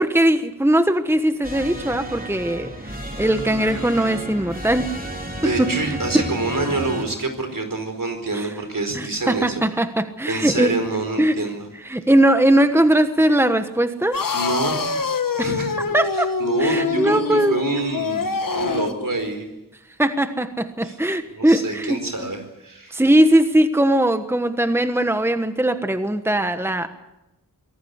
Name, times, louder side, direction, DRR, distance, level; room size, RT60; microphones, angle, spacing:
voice 1, 0.0-4.9 5.4-6.2 8.3-8.5 8.9-10.7 11.2-11.4 11.7-14.2 15.4-15.5 15.9-16.3 16.6-17.6 20.0-22.3 22.9-26.9, right 1 dB, 5° right, 9 dB, 1.3 m, -20 dB
sound 1, 1.4-7.1, equal, 25° right, 3.9 m, -32 dB
voice 2, 5.4-9.6 10.3-11.7 14.3-14.8 15.4-15.7 16.4-19.5 20.8-20.9 21.4-23.0, right 3 dB, 75° right, 6 dB, 4.7 m, -26 dB
sound 2, 14.1-19.0, left 5 dB, 75° left, 1.4 m, -25 dB
24.5 x 17.5 x 8.3 m, 0.93 s
wide cardioid pair, 70°, 33 cm